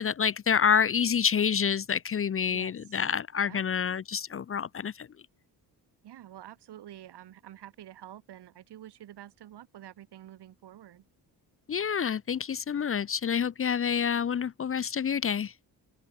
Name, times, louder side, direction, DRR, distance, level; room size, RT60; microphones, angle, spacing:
voice 1, 0.0-5.1 11.7-15.5, left 7 dB, 35° left, 0.6 m, -28 dB
voice 2, 2.5-3.0 3.4-3.6 6.0-11.1, right 12 dB, 80° right, 2.8 m, -48 dB
open air
cardioid pair, 120°, 40 cm